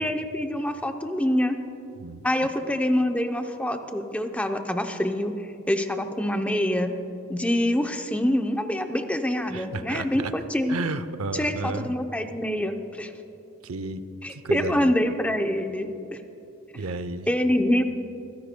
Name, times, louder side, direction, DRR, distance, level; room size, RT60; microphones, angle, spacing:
voice 1, 0.0-1.6 2.2-5.3 5.7-6.9 7.3-10.8 11.3-13.1 14.2-15.9 17.3-17.8, left 1 dB, 5° left, 6 dB, 0.6 m, -25 dB
voice 2, 9.5-10.3 10.7-11.9 13.6-14.0 14.3-14.9 16.7-17.3, right 3 dB, 75° right, 12 dB, 0.6 m, -32 dB
25.5 x 15.5 x 2.2 m, 2.8 s
head